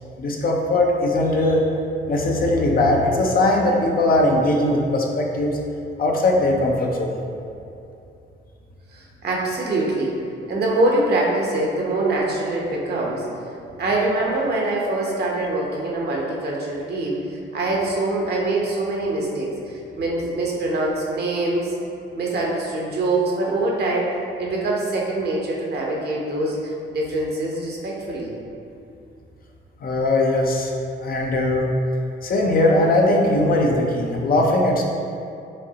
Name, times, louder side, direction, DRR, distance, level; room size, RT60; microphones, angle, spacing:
voice 1, 0.2-1.6 2.1-5.6 6.0-7.2 29.8-30.7 31.0-31.7 32.2-34.8, left 1 dB, 50° left, 0 dB, 0.6 m, -19 dB
voice 2, 8.9-10.2 10.5-13.3 13.8-21.8 22.2-28.3, right 2 dB, 55° right, -2 dB, 0.9 m, -24 dB
5.2 x 3.1 x 2.8 m, 2.6 s
cardioid pair, 90°, 20 cm